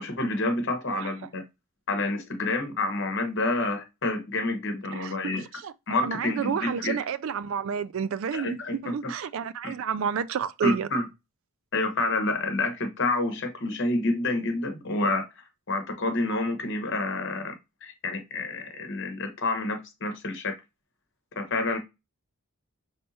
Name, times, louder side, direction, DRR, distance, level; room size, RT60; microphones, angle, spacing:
voice 1, 0.0-1.4 1.9-5.5 5.9-7.0 8.3-9.1 9.6-9.7 10.6-11.1 11.7-15.2 15.7-17.5 17.8-20.5 21.4-21.8, left 2 dB, 55° left, 1.1 m, -28 dB
voice 2, 6.0-10.9, right 7 dB, 60° right, 0.3 m, -30 dB
5.4 x 3.4 x 2.8 m
head